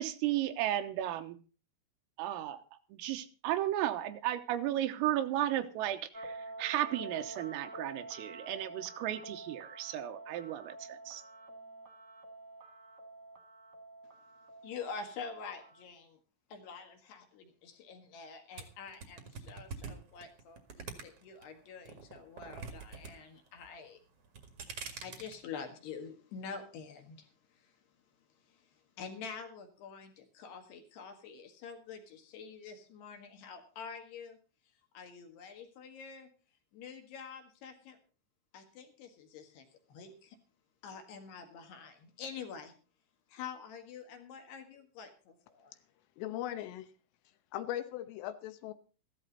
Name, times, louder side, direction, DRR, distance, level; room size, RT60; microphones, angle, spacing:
voice 1, 0.0-1.4 2.2-2.6 2.9-11.2, right 13 dB, 90° right, 9 dB, 3.7 m, -34 dB
sound 1, 6.1-15.8, right 2 dB, 35° right, 1.7 m, -48 dB
voice 2, 14.6-16.2 16.5-24.0 24.7-27.8 28.3-34.4 34.9-36.3 36.7-38.0 38.5-40.4 40.8-42.7 43.3-45.8, left 6 dB, 60° left, 5 dB, 3.4 m, -47 dB
sound 2, 18.6-21.4 21.8-23.1 23.4-23.9 24.2-25.4, right 5 dB, 55° right, 1.7 m, -44 dB
voice 3, 46.2-46.9 47.5-48.7, left 12 dB, 80° left, 10 dB, 3.5 m, -39 dB
14.5 x 13.5 x 4.0 m, 0.36 s
omnidirectional pair, 5.9 m